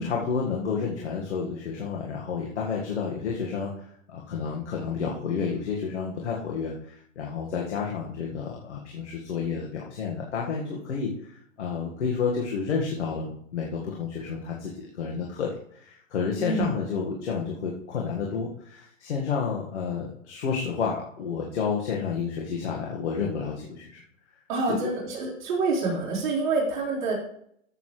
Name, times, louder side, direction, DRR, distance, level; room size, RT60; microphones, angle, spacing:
voice 1, 0.0-11.3 11.6-13.3 13.5-24.0 24.7-24.8, left 5 dB, 55° left, -2 dB, 1.9 m, -30 dB
voice 2, 24.5-27.1, right 3 dB, 35° right, -7 dB, 4.1 m, -27 dB
14.0 x 6.9 x 3.3 m, 0.69 s
hypercardioid pair, 170°, 40 cm